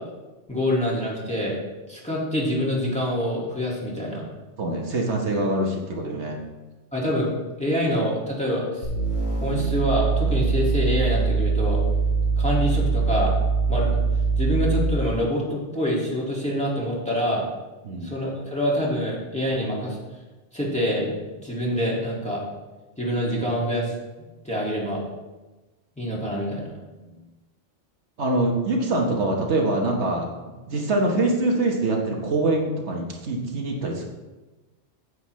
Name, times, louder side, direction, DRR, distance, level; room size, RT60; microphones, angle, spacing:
voice 1, 0.5-1.6 1.9-4.2 6.9-7.3 7.6-8.9 9.4-11.8 12.4-13.3 13.7-13.9 14.4-17.5 18.0-20.0 20.5-21.1 21.4-22.4 23.0-23.9 24.4-25.0 26.0-26.7, equal, 5° left, -5 dB, 1.9 m, -26 dB
voice 2, 4.6-6.4 17.8-18.1 28.2-30.3 30.7-34.1, right 2 dB, 65° right, 0 dB, 1.4 m, -24 dB
sound 1, 8.8-15.0, right 4 dB, 80° left, 3.6 m, -23 dB
9.5 x 8.1 x 3.1 m, 1.2 s
omnidirectional pair, 1.2 m